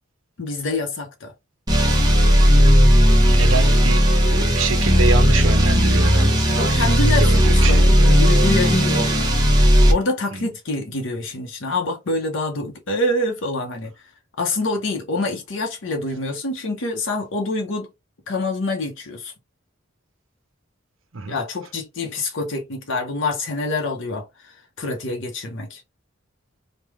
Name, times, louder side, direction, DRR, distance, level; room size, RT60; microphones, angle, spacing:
voice 1, 0.4-1.3 6.5-9.3 9.9-13.9 14.4-17.9 18.3-19.3 21.3-25.8, left 2 dB, 60° left, 0.7 m, -26 dB
sound 1, 1.7-9.9, equal, 20° right, 0.8 m, -15 dB
voice 2, 3.2-8.2 10.3-10.5 21.1-21.4, right 4 dB, 65° right, 0.7 m, -27 dB
3.1 x 2.2 x 3.4 m
head